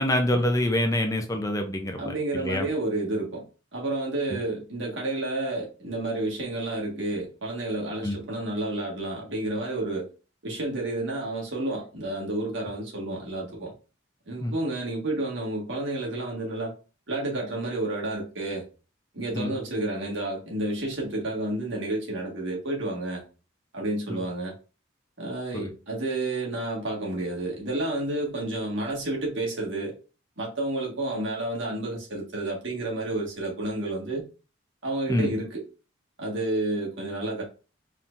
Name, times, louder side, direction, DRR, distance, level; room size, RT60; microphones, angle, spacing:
voice 1, 0.0-2.7 8.0-8.2 14.4-14.5 19.4-19.5 24.1-24.2 25.5-25.7 35.1-35.3, left 1 dB, 15° left, 0.6 m, -26 dB
voice 2, 2.0-3.4 3.7-10.1 10.4-13.7 14.3-16.7 17.1-18.6 19.1-23.2 23.7-24.5 25.2-29.9 30.4-34.3 34.8-35.6 36.2-37.4, right 2 dB, 75° right, 1.8 m, -30 dB
4.3 x 3.9 x 2.6 m
head